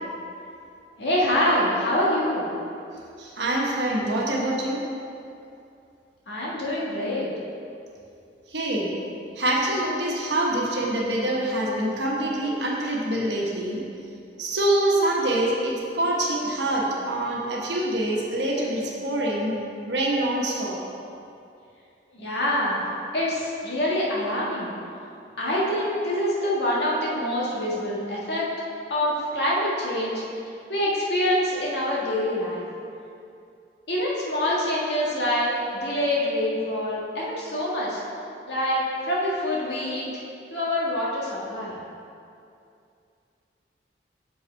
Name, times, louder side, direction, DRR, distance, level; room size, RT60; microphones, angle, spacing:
voice 1, 1.0-2.5 6.3-7.3 22.1-22.8 23.1-24.7 25.4-28.5 28.9-30.2 30.7-32.7 33.9-38.0 38.5-40.1 40.5-41.8, left 1 dB, 70° left, -6 dB, 1.7 m, -25 dB
voice 2, 3.2-4.8 8.5-8.9 9.4-13.8 14.4-19.6 19.9-20.8, right 1 dB, 75° right, -2 dB, 1.2 m, -25 dB
6.6 x 5.5 x 4.5 m, 2.5 s
head